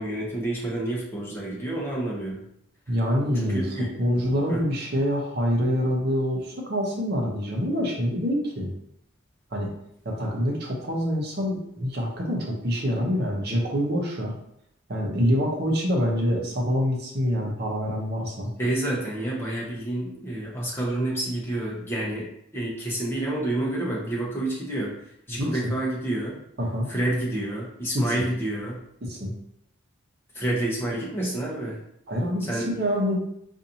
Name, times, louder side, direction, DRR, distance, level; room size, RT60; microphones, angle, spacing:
voice 1, 0.0-2.4 3.3-3.9 4.5-4.6 18.6-22.3 22.5-24.9 25.3-26.4 26.9-28.8 30.3-31.8 32.5-32.7, right 1 dB, 10° left, -4 dB, 0.8 m, -28 dB
voice 2, 2.9-8.7 9.5-9.7 10.0-14.4 14.9-18.5 25.4-25.7 26.6-26.9 27.9-28.1 29.0-29.3 32.1-33.2, equal, 50° right, -1 dB, 0.8 m, -26 dB
4.0 x 2.6 x 2.8 m, 0.75 s
head